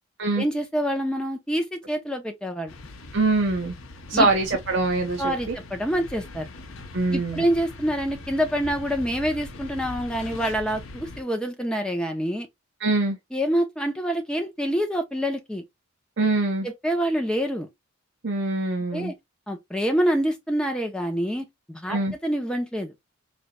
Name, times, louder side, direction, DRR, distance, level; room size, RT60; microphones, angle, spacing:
voice 1, 0.4-2.7 4.1-4.3 5.2-6.5 7.1-12.5 13.3-15.6 16.6-17.7 18.9-19.1 19.5-22.9, equal, 5° left, 0.7 m, -26 dB
sound 1, 2.7-11.2, left 2 dB, 70° left, 0.7 m, -41 dB
voice 2, 3.1-3.7 4.1-5.3 6.9-7.4 12.8-13.2 16.2-16.7 18.2-19.1 21.9-22.1, right 3 dB, 55° right, 0.8 m, -23 dB
4.0 x 3.2 x 2.3 m
head